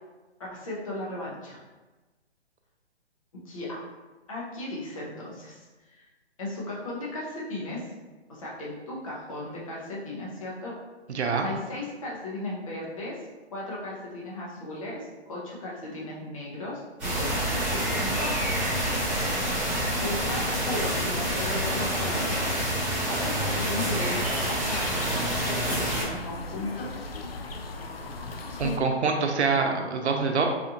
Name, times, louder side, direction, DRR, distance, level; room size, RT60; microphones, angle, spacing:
voice 1, 0.4-1.6 3.4-3.8 4.3-6.1 6.4-7.9 8.3-10.7 11.1-13.2 13.5-18.7 19.9-22.4 23.1-26.9, left 1 dB, 30° left, -5 dB, 0.8 m, -36 dB
voice 2, 11.1-11.5 28.6-30.5, right 4 dB, 90° right, 3 dB, 0.7 m, -25 dB
sound 1, 17.0-26.0, right 1 dB, 5° right, 0.9 m, -28 dB
sound 2, 18.5-28.8, left 2 dB, 60° left, 0.5 m, -37 dB
4.1 x 2.5 x 2.8 m, 1.2 s
hypercardioid pair, 170°, 33 cm